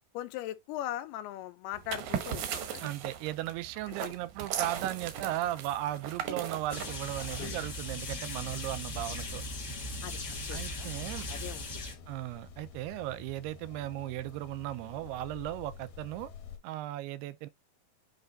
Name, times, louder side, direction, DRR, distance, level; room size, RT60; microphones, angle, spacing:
voice 1, 0.1-2.9 10.0-11.7, left 13 dB, 85° left, 2.7 m, -40 dB
sound 1, 1.7-7.8, right 9 dB, 70° right, 1.9 m, -38 dB
voice 2, 2.8-9.4 10.5-11.3 12.1-16.3 16.6-17.5, right 14 dB, 90° right, 2.6 m, -36 dB
sound 2, 6.7-11.9, left 1 dB, 50° left, 1.2 m, -38 dB
sound 3, 7.3-16.6, left 5 dB, 70° left, 2.9 m, -49 dB
8.0 x 3.3 x 3.9 m
omnidirectional pair, 4.6 m